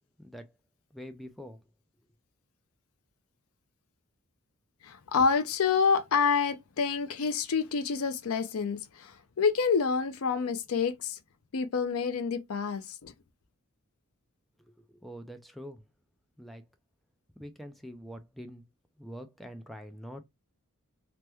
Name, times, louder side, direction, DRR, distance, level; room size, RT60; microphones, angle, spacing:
voice 1, 0.9-1.6 14.7-15.8 16.4-16.6 17.4-18.6 19.0-20.2, equal, ahead, 0.3 m, -45 dB
voice 2, 4.8-11.2 11.5-13.1, left 5 dB, 75° left, 0.5 m, -28 dB
2.9 x 2.1 x 3.3 m
head